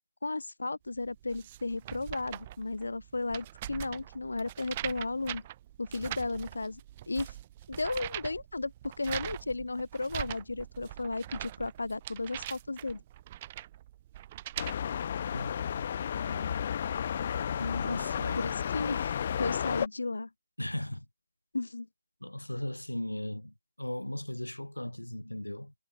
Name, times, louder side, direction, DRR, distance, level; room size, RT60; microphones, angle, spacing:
voice 1, 0.2-5.4 5.8-6.8 7.1-7.3 7.7-13.0 17.6-18.1 18.4-20.3 21.5-21.9, left 3 dB, 65° left, 3.9 m, -34 dB
sound 1, 1.0-14.7, right 13 dB, 25° right, 2.9 m, -42 dB
sound 2, 14.6-19.9, left 8 dB, 35° left, 2.5 m, -32 dB
voice 2, 16.2-16.6 17.8-18.6 20.6-21.1 22.2-25.7, left 1 dB, 80° left, 3.9 m, -37 dB
figure-of-eight pair, 145°, 0 cm